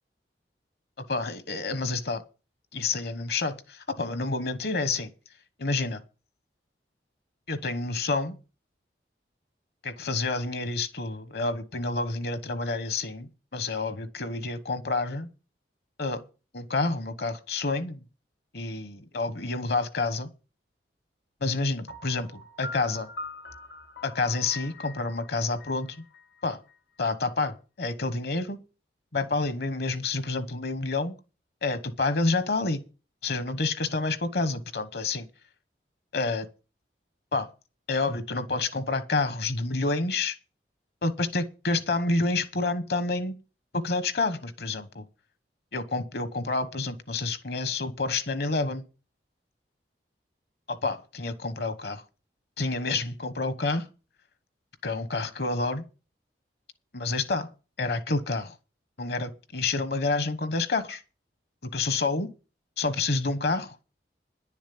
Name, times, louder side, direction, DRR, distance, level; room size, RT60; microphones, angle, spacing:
voice 1, 1.1-2.2 2.7-5.1 5.6-6.0 7.5-8.4 9.8-15.3 16.0-16.2 16.5-18.0 18.5-20.3 21.4-23.1 24.0-26.0 26.4-26.6 27.0-28.6 29.1-31.2 31.6-32.8 33.2-35.3 36.1-36.5 37.3-37.5 37.9-40.4 41.0-43.4 43.7-45.0 45.7-48.8 50.7-52.0 52.6-53.9 54.8-55.8 56.9-57.5 57.8-58.5 59.0-61.0 61.7-62.3 62.8-63.8, left 3 dB, 65° left, 1.1 m, -29 dB
Piano, 21.9-26.7, left 2 dB, 85° left, 1.8 m, -43 dB
10.5 x 7.2 x 8.5 m
head